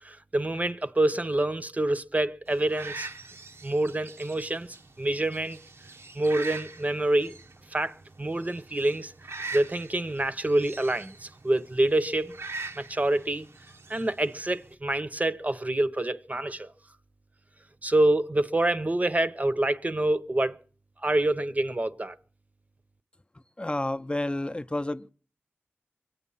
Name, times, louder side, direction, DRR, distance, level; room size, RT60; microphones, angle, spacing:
voice 1, 0.0-3.1 3.6-5.6 6.1-7.3 7.7-9.1 9.5-12.3 12.7-13.5 13.9-16.7 17.8-20.6 21.0-22.1, right 1 dB, 35° right, 0.8 m, -26 dB
sound 1, 2.5-14.7, right 3 dB, 85° right, 0.9 m, -43 dB
voice 2, 23.6-25.1, left 1 dB, 25° left, 0.6 m, -30 dB
23.5 x 8.6 x 5.6 m
wide cardioid pair, 55°, 4 cm